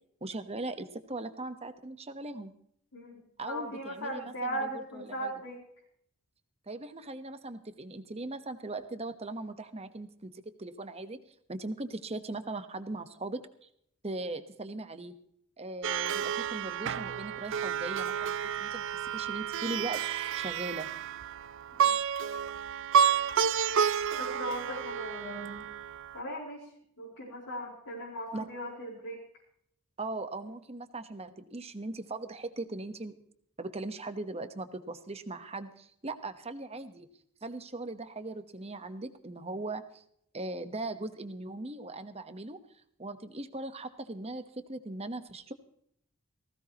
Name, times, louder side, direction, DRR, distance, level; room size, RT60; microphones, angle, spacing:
voice 1, 0.2-2.5 3.4-5.3 6.7-10.3 10.6-11.2 11.5-13.7 14.0-15.1 15.6-20.9 28.3-28.5 30.0-33.1 33.6-37.1 37.4-40.0 40.3-42.6 43.0-45.5, right 2 dB, 25° right, 9 dB, 1.1 m, -39 dB
voice 2, 2.9-5.6 21.8-22.0 24.2-25.7 26.1-26.7 27.0-29.2, equal, 80° left, -6 dB, 4.5 m, -38 dB
Plucked string instrument, 15.8-26.2, right 8 dB, 55° right, 0.5 m, -30 dB
19.5 x 16.0 x 3.0 m, 0.68 s
head